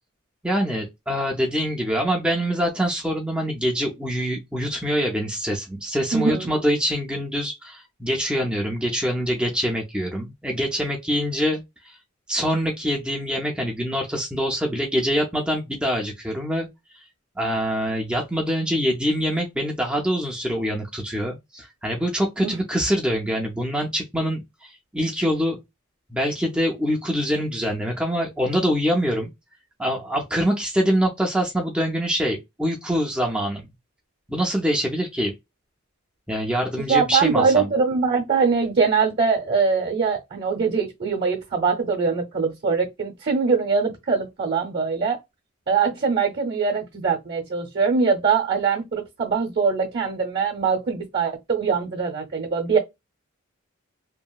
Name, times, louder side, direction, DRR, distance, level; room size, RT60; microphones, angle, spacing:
voice 1, 0.4-12.0 12.3-16.7 17.4-25.6 26.1-29.3 29.8-33.7 34.3-35.3 36.3-37.7, equal, 5° right, 0.4 m, -24 dB
voice 2, 6.1-6.5 22.4-22.5 36.9-45.2 45.7-52.8, right 5 dB, 50° right, 0.7 m, -22 dB
2.8 x 2.4 x 2.3 m
head